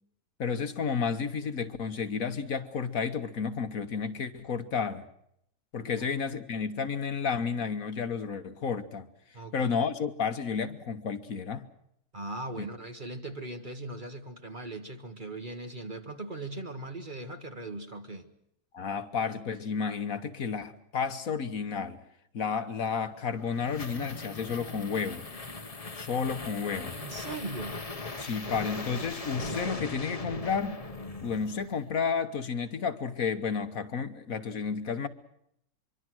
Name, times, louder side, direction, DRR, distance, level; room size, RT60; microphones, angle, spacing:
voice 1, 0.4-5.0 5.7-9.1 9.5-11.7 12.6-12.7 18.7-22.0 22.3-25.3 25.9-27.0 28.2-30.8 31.2-35.1, left 6 dB, 65° left, 9 dB, 1.7 m, -31 dB
voice 2, 9.3-9.7 12.1-18.3 26.9-27.8, right 2 dB, 35° right, 7 dB, 1.7 m, -39 dB
sound 1, 23.1-31.9, left 3 dB, 25° left, 1.3 m, -39 dB
24.5 x 24.0 x 6.2 m, 0.74 s
omnidirectional pair, 1.6 m